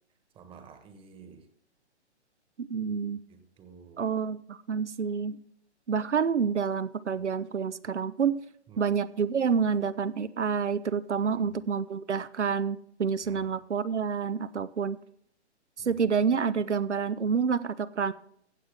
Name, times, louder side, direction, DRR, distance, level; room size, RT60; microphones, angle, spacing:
voice 1, 0.3-1.5 3.3-4.0 7.1-7.3 8.7-8.9 11.2-11.5 13.2-13.5 15.8-16.0, right 6 dB, 15° right, 8 dB, 1.3 m, -52 dB
voice 2, 2.6-3.2 4.0-5.4 5.9-8.4 8.8-15.0 15.8-18.1, right 6 dB, 85° right, 16 dB, 0.6 m, -28 dB
16.0 x 7.5 x 3.5 m, 0.68 s
figure-of-eight pair, 125°, 35 cm